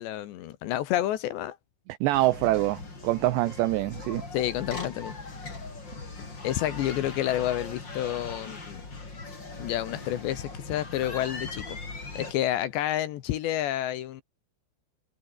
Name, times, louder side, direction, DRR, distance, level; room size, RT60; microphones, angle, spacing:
voice 1, 0.0-1.6 4.3-5.1 6.4-8.8 9.6-11.8 12.1-14.2, left 12 dB, 70° left, 3.1 m, -29 dB
voice 2, 2.0-4.2, right 17 dB, 85° right, 2.5 m, -25 dB
sound 1, 2.1-12.3, left 3 dB, 20° left, 4.8 m, -40 dB
omnidirectional pair, 5.9 m